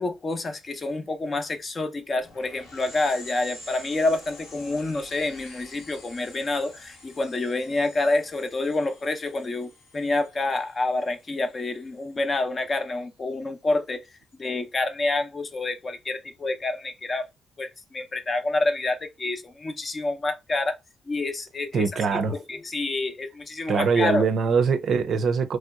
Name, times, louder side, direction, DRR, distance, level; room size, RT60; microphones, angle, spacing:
voice 1, 0.0-14.0 14.3-17.3 17.6-20.8 21.1-21.8 22.3-24.2, left 2 dB, 35° left, 0.7 m, -28 dB
sound 1, 2.2-12.3, left 1 dB, 80° left, 1.7 m, -48 dB
voice 2, 21.7-22.3 23.7-25.6, right 5 dB, 65° right, 0.5 m, -22 dB
3.1 x 2.8 x 2.3 m
cardioid pair, 90°, 0 cm